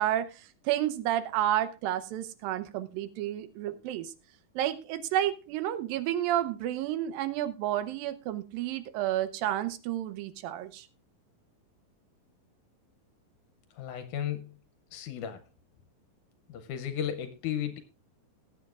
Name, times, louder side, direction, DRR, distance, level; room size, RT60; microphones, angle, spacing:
voice 1, 0.0-4.1 4.6-10.9, right 12 dB, 85° right, 13 dB, 2.5 m, -31 dB
voice 2, 13.8-14.5 14.9-15.4 16.5-17.8, left 10 dB, 75° left, 9 dB, 1.9 m, -34 dB
20.5 x 8.7 x 2.4 m, 0.31 s
omnidirectional pair, 4.0 m